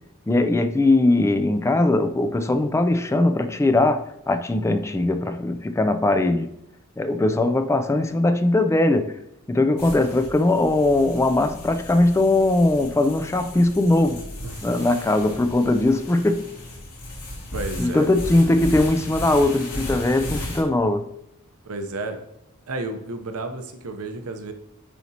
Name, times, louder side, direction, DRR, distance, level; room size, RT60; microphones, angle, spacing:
voice 1, 0.3-6.5 7.0-9.2 9.5-14.2 14.6-16.5 17.8-21.1, left 2 dB, 15° left, 0.3 m, -20 dB
sound 1, 9.8-20.6, left 1 dB, 75° left, 2.7 m, -35 dB
voice 2, 17.5-18.1 21.6-22.2 22.7-24.5, right 2 dB, 75° right, 0.8 m, -32 dB
9.8 x 4.3 x 2.8 m
head